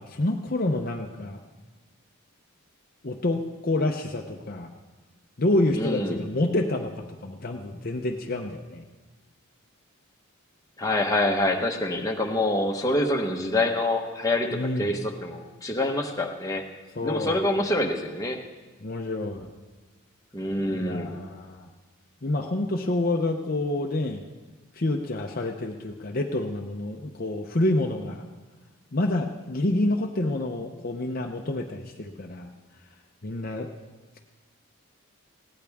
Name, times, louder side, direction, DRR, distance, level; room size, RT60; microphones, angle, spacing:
voice 1, 0.0-1.4 3.0-4.7 5.4-8.8 14.5-15.0 17.0-17.5 18.8-19.5 20.7-21.7 22.2-24.3 24.8-28.2 28.9-32.5 33.2-33.7, left 1 dB, 40° left, 3 dB, 0.7 m, -28 dB
voice 2, 5.8-6.2 10.8-14.5 14.8-16.6 17.0-18.4 20.3-21.1, left 1 dB, 15° left, 1 dB, 1.1 m, -26 dB
20.5 x 16.5 x 3.6 m, 1.3 s
head